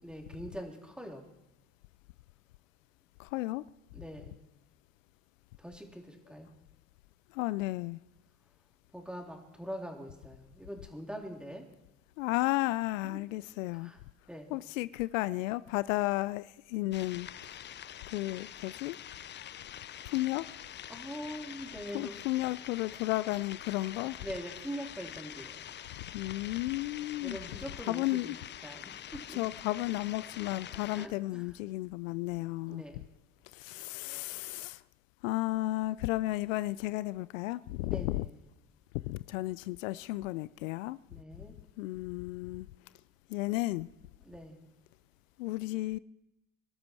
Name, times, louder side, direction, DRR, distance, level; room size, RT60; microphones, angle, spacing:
voice 1, 0.0-1.3 3.9-4.4 5.6-6.5 8.9-11.6 13.0-13.2 13.7-14.0 14.3-14.5 20.9-22.1 24.2-25.6 27.2-29.4 31.0-31.4 32.7-33.0 37.8-38.4 41.1-41.6 44.2-44.6, equal, ahead, 1 dB, 3.6 m, -43 dB
voice 2, 3.2-3.6 7.3-8.0 12.2-13.9 14.5-17.3 18.1-19.0 20.1-20.5 21.9-24.2 26.1-27.4 27.9-28.4 29.3-32.8 33.5-34.8 35.2-38.3 39.1-41.0 41.8-42.7 43.3-43.9 45.4-46.0, left 18 dB, 75° left, 18 dB, 0.5 m, -33 dB
sound 1, 16.9-31.1, left 10 dB, 30° left, 0.5 m, -46 dB
24.5 x 12.5 x 4.7 m, 0.92 s
hypercardioid pair, 65°, 39 cm